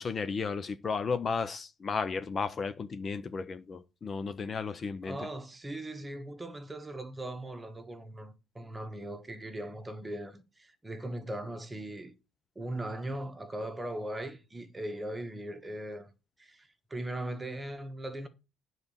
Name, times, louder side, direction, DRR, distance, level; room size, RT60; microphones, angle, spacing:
voice 1, 0.0-5.3, left 5 dB, 30° left, 0.6 m, -34 dB
voice 2, 5.0-12.1 12.5-16.1 16.4-18.3, right 1 dB, 15° right, 1.3 m, -39 dB
9.5 x 4.0 x 7.1 m
cardioid pair, 130°, 0 cm